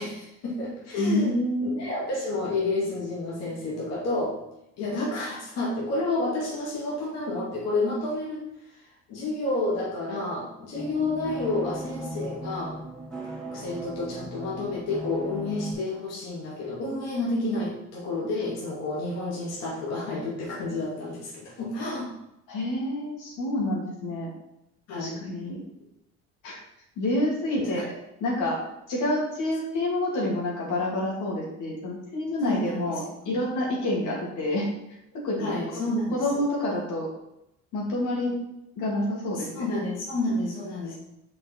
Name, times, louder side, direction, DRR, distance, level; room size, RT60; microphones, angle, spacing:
voice 1, 0.0-4.4 4.8-12.8 13.5-22.1 24.9-25.3 27.6-27.8 32.4-33.0 35.4-36.4 39.3-41.0, left 2 dB, 55° left, -5 dB, 2.4 m, -30 dB
voice 2, 1.0-1.8 22.5-24.3 25.0-25.6 26.4-26.6 27.0-27.9 28.2-28.6 28.9-34.7 35.1-35.5 36.1-37.1 37.7-38.4 38.8-39.7, left 1 dB, 80° left, -4 dB, 2.9 m, -28 dB
sound 1, 10.7-15.7, right 1 dB, ahead, 2.0 m, -38 dB
6.3 x 5.5 x 4.6 m, 0.84 s
cardioid pair, 140°, 30 cm